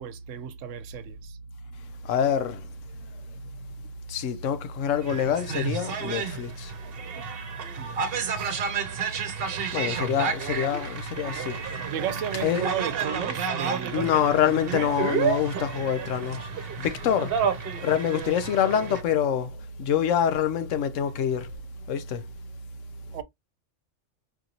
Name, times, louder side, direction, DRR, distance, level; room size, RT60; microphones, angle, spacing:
voice 1, 0.0-1.3 7.8-8.6 11.8-14.1 23.1-23.2, right 10 dB, 80° right, 0.9 m, -34 dB
voice 2, 2.0-2.7 4.1-6.7 9.7-11.6 12.3-12.7 13.9-17.4 17.8-21.5 21.9-22.3, left 8 dB, 85° left, 1.0 m, -26 dB
sound 1, 5.0-19.0, right 6 dB, 55° right, 0.9 m, -31 dB
4.8 x 2.6 x 2.8 m
omnidirectional pair, 1.3 m